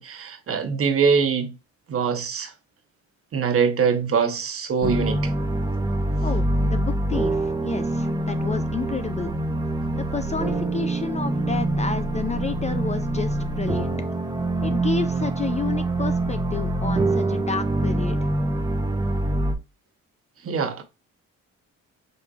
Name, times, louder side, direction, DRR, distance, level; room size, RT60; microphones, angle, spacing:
voice 1, 0.0-1.5 1.9-2.5 3.3-5.3 20.4-20.8, right 6 dB, 50° right, 1.0 m, -23 dB
sound 1, 4.8-19.5, right 2 dB, 15° right, 0.6 m, -25 dB
voice 2, 6.2-9.3 9.9-13.9 14.6-18.2, left 5 dB, 25° left, 0.3 m, -30 dB
5.2 x 3.2 x 2.4 m
cardioid pair, 90°, 30 cm